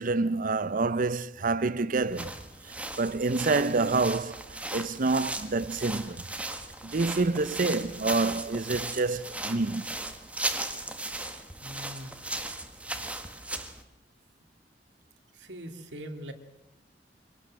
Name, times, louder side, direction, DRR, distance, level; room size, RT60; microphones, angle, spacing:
voice 1, 0.0-2.3 3.0-4.4 4.7-6.2 6.8-9.9, right 3 dB, 50° right, 0.8 m, -27 dB
sound 1, 2.0-13.8, right 2 dB, 10° right, 1.8 m, -37 dB
voice 2, 11.6-12.2 15.3-16.3, equal, 85° right, 2.5 m, -41 dB
24.5 x 18.0 x 7.5 m
head